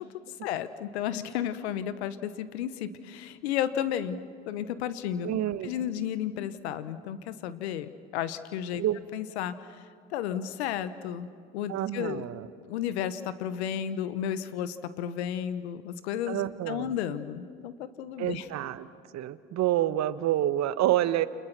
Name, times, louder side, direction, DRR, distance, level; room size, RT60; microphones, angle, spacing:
voice 1, 0.4-4.2 4.5-5.4 5.6-8.8 9.1-9.5 10.1-11.3 11.5-12.3 12.7-18.5, left 10 dB, 80° left, 13 dB, 1.3 m, -33 dB
voice 2, 5.2-5.7 8.8-9.0 11.7-12.5 16.3-16.9 18.2-18.9 19.1-21.3, right 13 dB, 55° right, 14 dB, 1.3 m, -28 dB
29.5 x 28.5 x 6.2 m, 2.3 s
hypercardioid pair, 65°, 32 cm